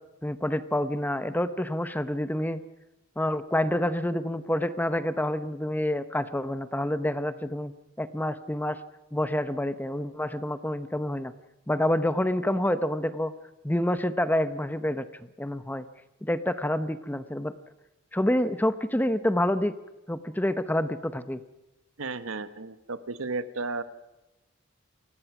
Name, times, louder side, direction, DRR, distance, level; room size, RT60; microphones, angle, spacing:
voice 1, 0.2-2.6 3.2-7.7 8.0-8.8 9.1-11.3 11.7-13.3 13.6-15.0 15.4-15.9 16.2-17.5 18.1-19.7 20.1-21.4, left 1 dB, 10° left, 13 dB, 0.7 m, -27 dB
voice 2, 22.0-23.8, right 3 dB, 80° right, 13 dB, 1.1 m, -33 dB
29.0 x 17.0 x 6.0 m, 1.0 s
head